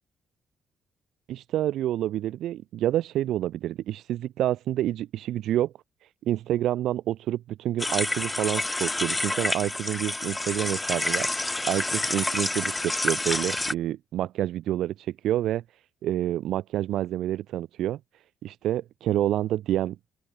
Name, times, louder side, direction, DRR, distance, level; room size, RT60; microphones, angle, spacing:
voice 1, 1.3-5.7 6.0-15.6 16.0-18.0 18.4-20.0, right 13 dB, 80° right, 1.0 m, -28 dB
sound 1, 7.8-13.7, left 2 dB, 15° left, 0.4 m, -28 dB
open air
cardioid pair, 90°, 0 cm